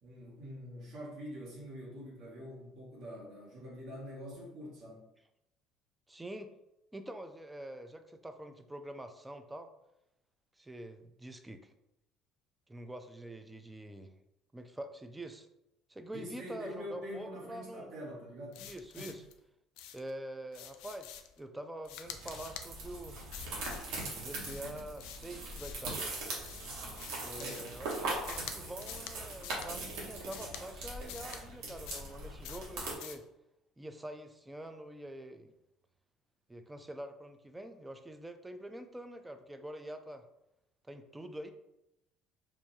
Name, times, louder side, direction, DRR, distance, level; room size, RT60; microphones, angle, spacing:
voice 1, 0.0-5.0 16.1-18.6 18.9-19.2 27.2-27.7, equal, 65° right, -5 dB, 1.4 m, -45 dB
voice 2, 6.1-6.5 6.9-9.7 10.6-11.7 12.7-14.1 14.5-15.5 15.9-17.9 18.6-19.2 19.9-21.1 21.4-23.2 24.1-26.2 27.2-33.3 33.8-35.5 36.5-40.2 40.8-41.5, right 1 dB, 10° right, 8 dB, 0.4 m, -45 dB
sound 1, 18.5-19.3 19.8-20.1 20.5-21.4 21.8-22.7 23.3-23.9 24.4-25.9 26.4-27.8 28.3-28.6 28.8-29.2 29.4-29.7 30.3-30.6 31.1-31.4 31.9-32.1 32.4-32.7 33.0-33.2, left 10 dB, 80° left, 0.3 m, -47 dB
sound 2, 22.0-32.9, right 2 dB, 85° right, 1.2 m, -41 dB
4.5 x 2.6 x 2.7 m, 0.87 s
supercardioid pair, 100°, 0 cm